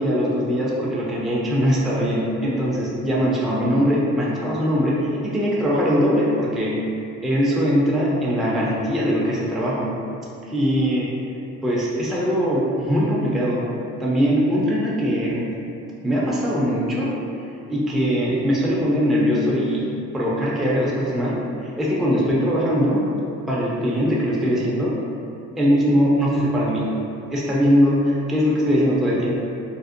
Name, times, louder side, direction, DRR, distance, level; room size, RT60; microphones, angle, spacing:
voice 1, 0.0-6.8 7.2-10.0 10.5-11.1 11.6-13.7 14.0-15.5 16.0-17.1 17.7-19.9 20.1-23.0 23.5-25.0 25.6-26.9 27.3-29.3, equal, ahead, -6 dB, 0.4 m, -21 dB
2.5 x 2.0 x 2.5 m, 2.6 s
cardioid pair, 90°, 30 cm